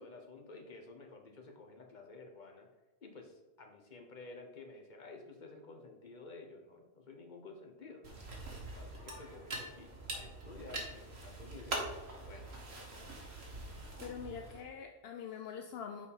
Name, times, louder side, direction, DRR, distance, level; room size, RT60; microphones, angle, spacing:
voice 1, 0.0-2.7 3.0-8.1 8.5-12.5, left 3 dB, 50° left, 3 dB, 1.2 m, -52 dB
sound 1, 8.0-14.6, right 2 dB, 90° right, 1.7 m, -44 dB
voice 2, 14.0-16.1, left 7 dB, 75° left, 5 dB, 0.8 m, -44 dB
6.5 x 4.9 x 5.4 m, 1.1 s
omnidirectional pair, 1.1 m